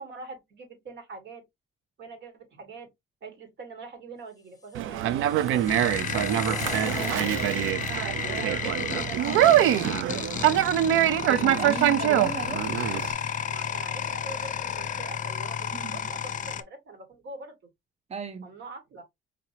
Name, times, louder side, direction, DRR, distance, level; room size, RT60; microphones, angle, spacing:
voice 1, 0.0-1.4 2.0-2.9 3.2-5.7 6.1-7.3 8.2-10.5 13.4-17.6 18.4-19.0, right 3 dB, 65° right, 1.9 m, -43 dB
sound 1, 4.7-7.9, left 3 dB, 15° left, 1.1 m, -41 dB
Conversation, 4.7-13.1, right 12 dB, 90° right, 0.4 m, -24 dB
sound 2, 5.7-16.6, left 8 dB, 40° left, 0.5 m, -32 dB
voice 2, 11.3-12.7 15.7-16.0 18.1-18.5, right 6 dB, 30° right, 0.8 m, -35 dB
5.0 x 2.8 x 2.7 m
cardioid pair, 90°, 20 cm